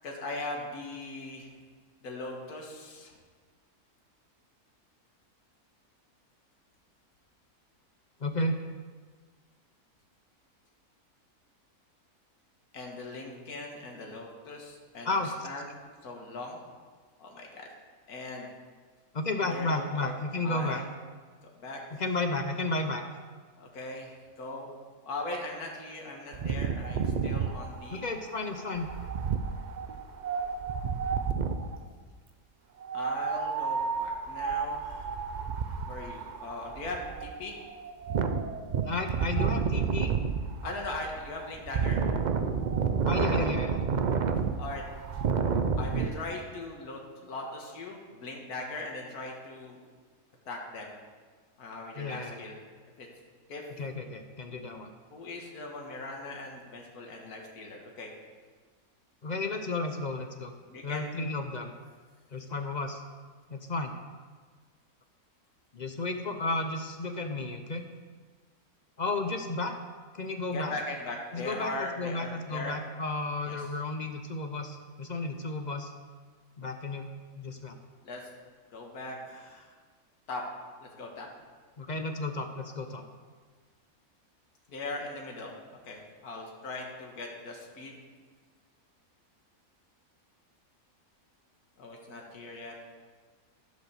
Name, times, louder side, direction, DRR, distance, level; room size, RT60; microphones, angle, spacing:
voice 1, 0.0-1.5 2.0-3.1 12.7-15.8 16.0-16.6 17.2-17.7 18.1-18.5 19.5-20.2 20.4-20.8 21.6-22.0 23.6-24.8 25.0-28.0 32.9-35.2 35.9-37.6 40.6-42.0 44.6-44.8 45.8-49.8 50.5-50.9 51.6-52.6 53.0-53.1 53.5-53.7 55.1-58.1 60.7-61.3 70.5-72.8 73.5-73.6 78.0-78.3 78.7-79.8 80.3-80.5 80.8-81.3 84.7-85.5 85.8-88.0 91.8-92.7, left 2 dB, 80° left, 0 dB, 1.9 m, -39 dB
voice 2, 8.2-8.6 15.0-15.5 19.1-20.8 22.0-23.0 27.9-28.9 38.8-40.1 43.0-43.8 52.0-52.5 53.8-54.9 59.2-60.5 60.8-61.7 62.3-63.0 63.5-63.9 65.7-67.8 69.0-69.8 70.1-70.7 71.3-75.9 76.6-77.1 77.4-77.8 81.8-83.0, left 2 dB, 45° left, 6 dB, 0.6 m, -33 dB
Wind, 26.3-31.8 32.8-46.1, right 6 dB, 85° right, 0.4 m, -30 dB
13.5 x 5.3 x 6.7 m, 1.5 s
omnidirectional pair, 1.6 m